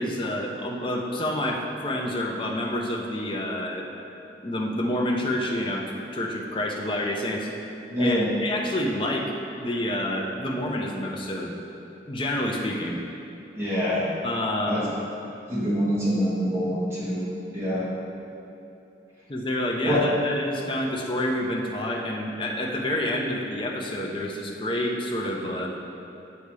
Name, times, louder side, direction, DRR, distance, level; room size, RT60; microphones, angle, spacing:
voice 1, 0.0-3.9 4.4-5.8 6.1-7.5 8.0-9.3 9.6-11.5 12.0-13.0 14.2-14.9 19.3-25.7, left 1 dB, 25° left, -1 dB, 0.5 m, -28 dB
voice 2, 7.9-8.3 13.5-14.0 14.7-14.8 15.5-17.2 17.5-17.9 19.9-20.0, equal, 15° right, -9 dB, 1.4 m, -25 dB
8.0 x 2.8 x 4.7 m, 3.0 s
head